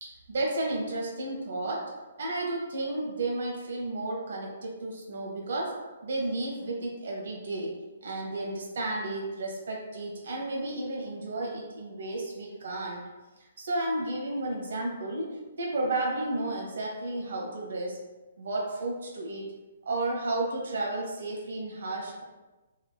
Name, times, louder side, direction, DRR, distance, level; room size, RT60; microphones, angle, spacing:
voice 1, 0.0-1.9 2.2-13.0 13.6-15.3 15.6-18.0 18.4-19.5 19.9-22.2, right 2 dB, 65° right, -1 dB, 0.9 m, -32 dB
3.1 x 2.9 x 2.2 m, 1.1 s
figure-of-eight pair, 135°, 0 cm